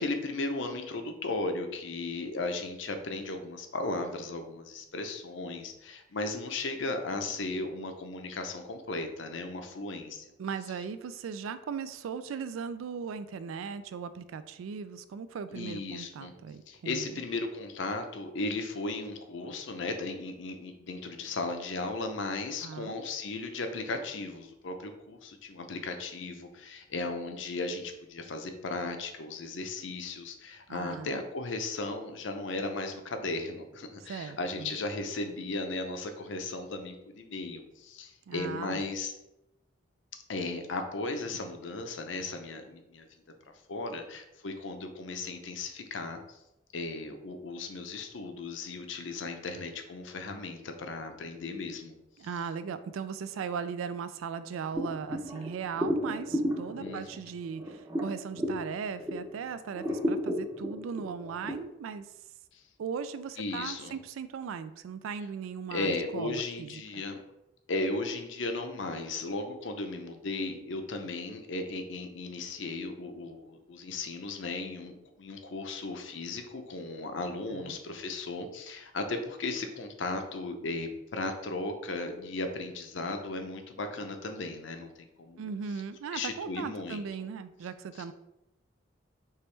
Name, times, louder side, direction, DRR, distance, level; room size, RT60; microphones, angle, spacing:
voice 1, 0.0-10.2 15.5-16.3 16.7-39.1 40.3-43.1 43.7-46.4 46.7-51.9 56.8-57.2 62.5-62.6 63.4-63.9 65.7-67.2 67.7-85.5 86.1-87.0 88.0-88.1, left 3 dB, 70° left, 6 dB, 0.6 m, -36 dB
voice 2, 10.4-17.2 22.6-22.9 30.7-31.1 34.1-34.7 38.3-38.8 52.2-62.1 62.8-67.0 77.5-77.8 85.4-88.1, right 6 dB, 85° right, 13 dB, 0.3 m, -38 dB
sound 1, 54.7-59.4 59.7-61.5, equal, 15° right, 0.7 m, -33 dB
4.6 x 3.0 x 3.2 m, 0.89 s
head